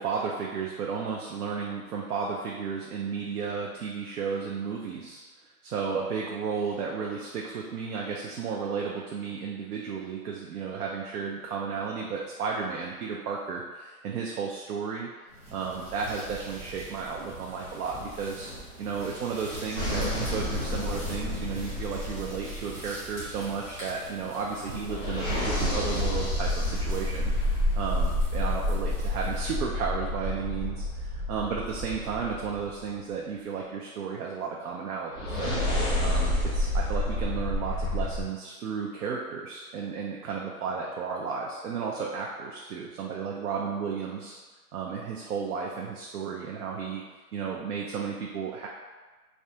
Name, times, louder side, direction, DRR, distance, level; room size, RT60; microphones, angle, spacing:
voice 1, 0.0-5.2 5.6-15.1 15.5-18.5 18.8-27.3 27.7-35.5 36.0-44.4 44.7-47.0 47.3-48.7, right 5 dB, 75° right, -2 dB, 0.5 m, -33 dB
sound 1, 15.3-29.7, right 1 dB, 20° right, 0.8 m, -43 dB
sound 2, 19.7-23.2 24.8-32.8 35.1-38.2, left 1 dB, 20° left, 0.5 m, -29 dB
2.4 x 2.2 x 2.7 m, 1.3 s
hypercardioid pair, 160°, 45 cm